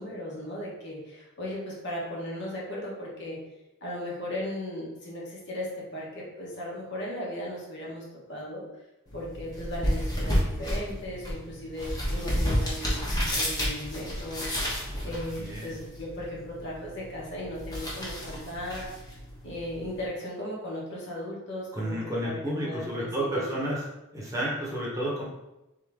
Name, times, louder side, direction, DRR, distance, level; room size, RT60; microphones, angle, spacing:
voice 1, 0.0-3.4 3.8-8.7 9.1-18.9 19.4-22.0 22.2-22.4 22.6-23.5, left 1 dB, 55° left, -4 dB, 1.4 m, -37 dB
sound 1, 9.1-20.1, equal, 20° left, 1.1 m, -32 dB
voice 2, 15.0-15.7 21.7-23.8 24.1-25.2, right 1 dB, 15° right, -5 dB, 1.0 m, -31 dB
3.8 x 3.7 x 3.6 m, 0.95 s
head